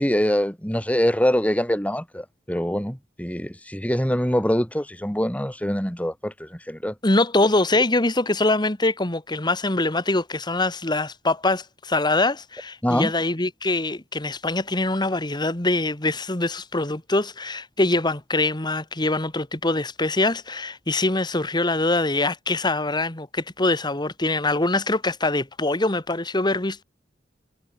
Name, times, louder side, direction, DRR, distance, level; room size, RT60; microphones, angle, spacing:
voice 1, 0.0-6.9 12.8-13.1, equal, 10° left, 4.3 m, -24 dB
voice 2, 7.0-26.8, left 2 dB, 25° left, 1.9 m, -23 dB
head